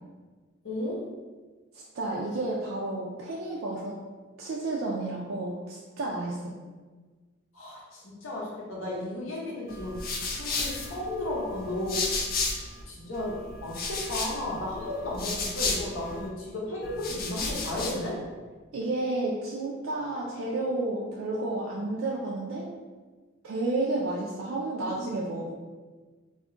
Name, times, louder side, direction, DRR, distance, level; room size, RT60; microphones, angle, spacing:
voice 1, 0.6-1.0 7.5-10.0 10.3-12.1 12.8-18.2, left 1 dB, 90° left, -4 dB, 0.8 m, -34 dB
voice 2, 1.7-4.0 4.4-6.5 18.7-22.7 23.4-25.5, right 2 dB, 85° right, -3 dB, 0.4 m, -31 dB
sound 1, 9.7-12.8 13.1-16.3 16.8-18.1, left 3 dB, 45° left, 0.4 m, -33 dB
2.3 x 2.1 x 3.7 m, 1.4 s
head